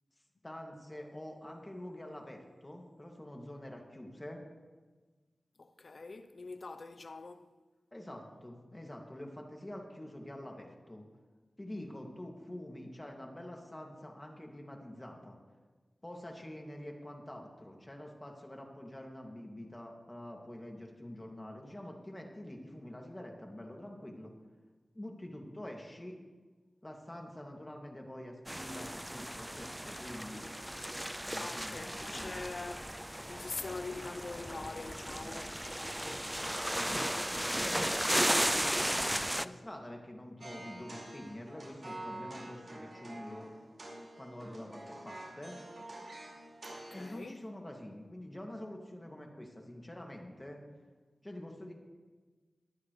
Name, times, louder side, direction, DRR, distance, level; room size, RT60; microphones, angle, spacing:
voice 1, 0.4-4.4 7.9-11.1 11.6-15.4 16.0-24.3 24.9-26.2 26.8-30.4 31.2-32.3 36.8-37.1 37.5-43.5 44.2-45.6 46.9-50.6 51.2-51.7, left 1 dB, 20° left, 2.4 m, -46 dB
voice 2, 5.6-7.5 31.3-32.9 33.3-35.6 46.7-47.4, left 3 dB, 60° left, 0.7 m, -44 dB
sound 1, 28.5-39.5, equal, 5° right, 0.4 m, -35 dB
sound 2, 40.4-47.2, right 1 dB, 55° right, 5.0 m, -47 dB
22.5 x 9.2 x 3.3 m
cardioid pair, 55°, 0 cm